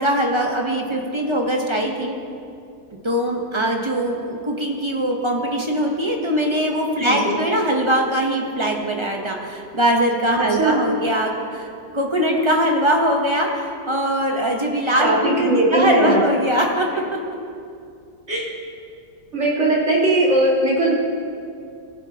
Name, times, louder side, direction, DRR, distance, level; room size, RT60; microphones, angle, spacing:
voice 1, 0.0-2.2 3.0-11.7 11.9-16.9, equal, 25° right, 0 dB, 0.6 m, -21 dB
voice 2, 7.0-7.3 10.6-10.8 15.0-16.2 18.3-18.5 19.3-20.9, right 2 dB, 45° right, -6 dB, 2.5 m, -19 dB
17.5 x 7.8 x 2.8 m, 2.5 s
omnidirectional pair, 1.7 m